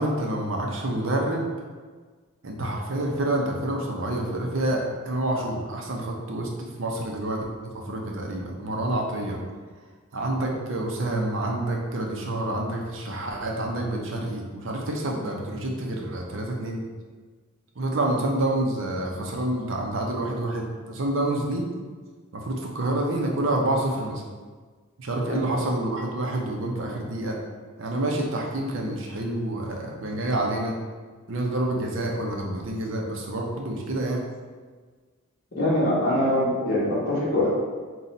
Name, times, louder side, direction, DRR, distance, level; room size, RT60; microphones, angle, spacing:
voice 1, 0.0-1.5 2.4-9.4 10.1-16.8 17.8-21.7 22.3-24.2 25.0-27.4 27.8-30.8 31.3-34.3, right 1 dB, 60° right, 0 dB, 0.7 m, -28 dB
voice 2, 35.6-37.5, left 1 dB, 50° left, -6 dB, 1.3 m, -23 dB
4.0 x 2.4 x 4.1 m, 1.5 s
head